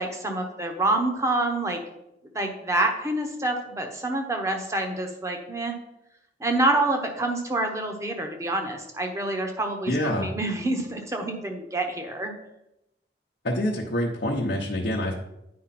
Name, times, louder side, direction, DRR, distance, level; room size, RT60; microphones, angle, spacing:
voice 1, 0.0-1.8 2.3-5.7 6.4-12.3, right 2 dB, 15° right, 3 dB, 1.0 m, -27 dB
voice 2, 9.9-10.3 13.4-15.1, left 1 dB, 70° left, -3 dB, 0.9 m, -26 dB
9.5 x 5.1 x 4.2 m, 0.86 s
head